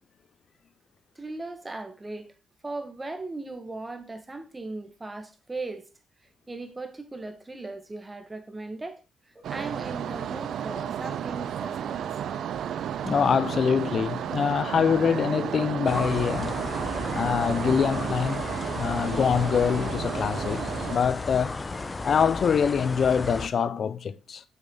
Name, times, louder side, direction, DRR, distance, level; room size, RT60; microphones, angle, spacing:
voice 1, 1.1-2.3 2.6-5.9 6.5-9.0 9.3-12.0, right 2 dB, 20° right, 1.6 m, -38 dB
sound 1, 9.4-21.0, right 9 dB, 70° right, 0.6 m, -32 dB
voice 2, 13.0-16.6 17.1-18.4 18.7-21.6 22.0-24.4, left 7 dB, 50° left, 0.5 m, -25 dB
sound 2, 15.8-23.5, left 3 dB, 25° left, 0.8 m, -34 dB
7.1 x 6.5 x 3.8 m
cardioid pair, 90°, 0 cm